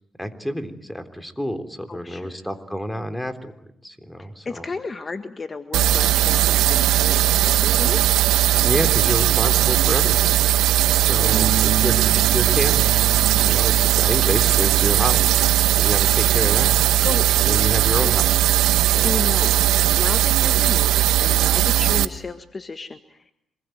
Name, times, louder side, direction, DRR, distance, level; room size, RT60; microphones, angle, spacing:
voice 1, 0.2-3.5 3.8-4.7 8.6-10.4 10.9-13.1 13.4-16.8 17.4-18.6 18.9-19.4 19.9-20.1, equal, 5° left, 8 dB, 3.4 m, -29 dB
voice 2, 1.9-2.4 4.4-8.0 11.2-11.9 17.0-17.3 18.9-19.5 19.9-23.2, left 4 dB, 30° left, 8 dB, 1.7 m, -33 dB
sound 1, 5.7-22.1, right 14 dB, 90° right, 1.2 m, -18 dB
Bass guitar, 11.3-17.6, right 7 dB, 65° right, 1.7 m, -32 dB
27.0 x 21.0 x 9.3 m, 0.74 s
cardioid pair, 80°, 0 cm